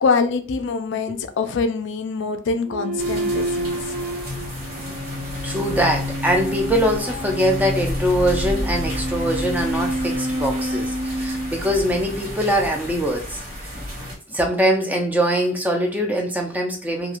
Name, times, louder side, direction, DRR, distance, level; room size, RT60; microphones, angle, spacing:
voice 1, 0.0-4.0, left 4 dB, 60° left, 8 dB, 0.4 m, -24 dB
sound 1, 2.6-12.3, right 1 dB, 70° right, 1.3 m, -29 dB
sound 2, 3.0-14.1, left 1 dB, 50° right, 1.2 m, -31 dB
voice 2, 5.4-13.7 14.3-17.2, equal, 10° right, 2 dB, 0.4 m, -23 dB
2.4 x 2.3 x 2.9 m, 0.42 s
head